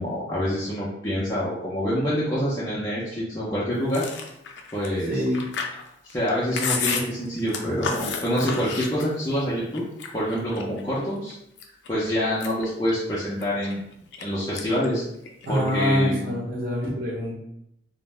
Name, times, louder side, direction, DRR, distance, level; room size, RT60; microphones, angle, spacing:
voice 1, 0.0-4.0 4.7-5.1 6.1-9.8 10.1-11.4 11.9-13.9 14.2-15.0 15.5-16.4, equal, 20° left, -9 dB, 0.5 m, -26 dB
Chewing mastication, 3.9-9.4 9.7-10.8 11.3-11.9 12.2-14.2 14.6-14.9 15.2-16.0, left 5 dB, 70° left, 0.4 m, -32 dB
voice 2, 5.1-5.4 15.4-17.4, equal, 50° right, -5 dB, 0.8 m, -25 dB
2.5 x 2.0 x 3.2 m, 0.79 s
head